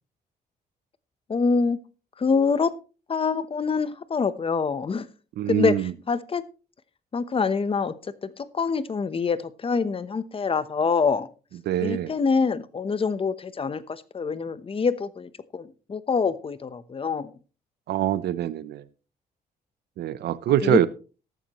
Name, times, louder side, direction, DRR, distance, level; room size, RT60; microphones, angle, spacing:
voice 1, 1.3-1.8 2.2-2.7 3.1-5.1 5.5-6.4 7.1-11.3 11.8-17.3 20.6-20.9, left 5 dB, 35° left, 14 dB, 1.0 m, -25 dB
voice 2, 5.4-5.9 11.7-12.1 17.9-18.8 20.0-20.9, right 12 dB, 85° right, 16 dB, 0.7 m, -24 dB
14.5 x 11.0 x 3.1 m, 0.34 s
cardioid pair, 110°, 17 cm